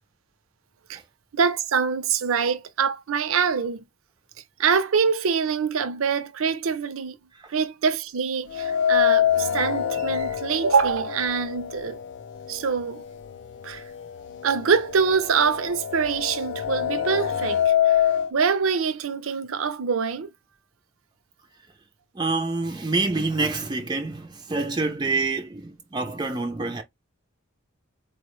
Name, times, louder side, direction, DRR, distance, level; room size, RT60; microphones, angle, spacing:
voice 1, 1.3-3.8 4.6-7.2 7.5-12.0 12.5-13.0 13.6-13.8 14.4-18.0 18.3-20.3, right 6 dB, 70° right, 0.5 m, -24 dB
sound 1, 8.5-12.6 12.9-13.0 14.0-14.1 14.5-18.3, left 10 dB, 55° left, 0.3 m, -25 dB
voice 2, 22.1-26.8, right 3 dB, 20° right, 0.4 m, -27 dB
4.1 x 2.1 x 3.0 m
head